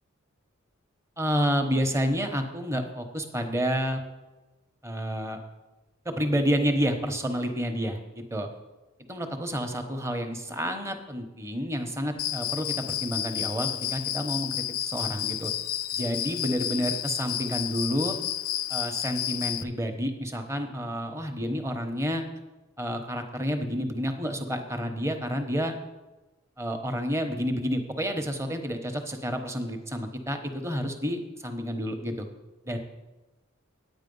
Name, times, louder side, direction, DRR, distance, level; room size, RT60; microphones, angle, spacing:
voice 1, 1.2-4.0 4.8-5.4 6.0-8.5 9.1-15.5 15.9-18.2 18.7-22.2 22.8-25.7 26.6-32.3 32.7-32.8, equal, 15° right, 5 dB, 1.0 m, -29 dB
Cricket, 12.2-19.6, left 11 dB, 85° left, 0.5 m, -31 dB
9.2 x 8.9 x 5.4 m, 1.1 s
head